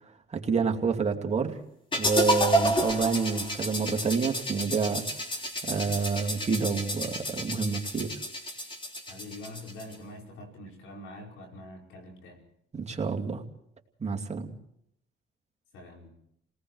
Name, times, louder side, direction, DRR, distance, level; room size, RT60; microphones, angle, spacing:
voice 1, 0.3-1.6 2.0-5.1 5.6-8.2 12.7-13.4 14.0-14.5, right 5 dB, 35° right, 2 dB, 2.5 m, -28 dB
sound 1, 1.9-10.0, equal, 25° left, 3.8 m, -30 dB
voice 2, 9.1-12.4 15.7-16.1, left 1 dB, 85° left, 0 dB, 5.2 m, -45 dB
30.0 x 18.5 x 4.7 m, 0.75 s
cardioid pair, 90°, 20 cm